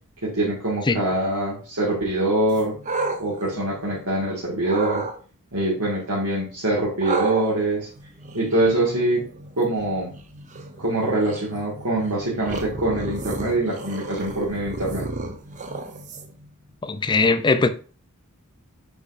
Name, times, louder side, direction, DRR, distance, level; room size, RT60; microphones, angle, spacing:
voice 1, 0.2-2.7 3.2-5.0 5.5-7.9 8.3-9.2 9.6-10.1 10.8-15.1, right 1 dB, 80° right, 2.0 m, -24 dB
sound 1, 2.5-4.2 4.6-5.1 7.0-16.5, right 3 dB, 35° right, 0.8 m, -33 dB
voice 2, 16.8-17.7, left 3 dB, 20° left, 0.5 m, -20 dB
7.1 x 5.2 x 2.6 m
head